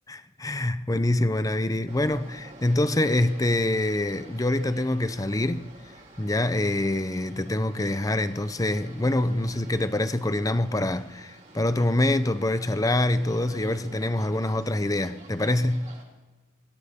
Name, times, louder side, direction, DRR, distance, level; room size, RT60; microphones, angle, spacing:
voice 1, 0.1-5.7 6.2-15.9, left 1 dB, 15° left, 0.7 m, -25 dB
sound 1, 1.9-16.0, right 2 dB, 40° right, 4.6 m, -48 dB
24.5 x 16.0 x 3.7 m
head